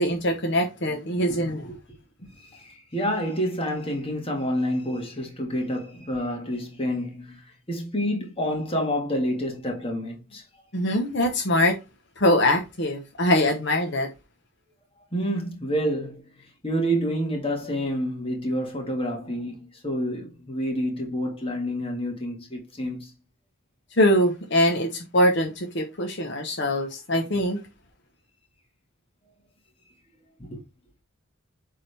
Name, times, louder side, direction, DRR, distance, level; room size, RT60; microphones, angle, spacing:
voice 1, 0.0-1.6 10.7-11.8 12.2-14.1 24.0-27.6, left 1 dB, 60° left, 1.1 m, -23 dB
voice 2, 2.4-10.4 15.1-16.3 16.6-23.1 30.4-30.6, equal, 25° left, 1.9 m, -28 dB
8.4 x 3.8 x 3.4 m
head